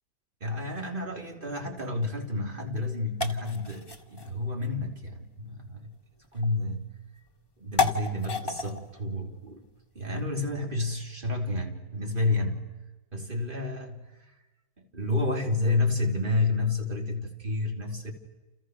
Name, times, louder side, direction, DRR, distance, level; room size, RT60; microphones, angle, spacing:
voice 1, 0.4-5.9 6.3-6.9 7.6-9.6 10.0-12.7 13.1-14.3 14.9-18.1, left 2 dB, 35° right, 2 dB, 3.5 m, -30 dB
sound 1, 2.0-10.6, left 5 dB, 15° left, 1.8 m, -36 dB
30.0 x 29.5 x 6.5 m, 1.2 s
omnidirectional pair, 1.6 m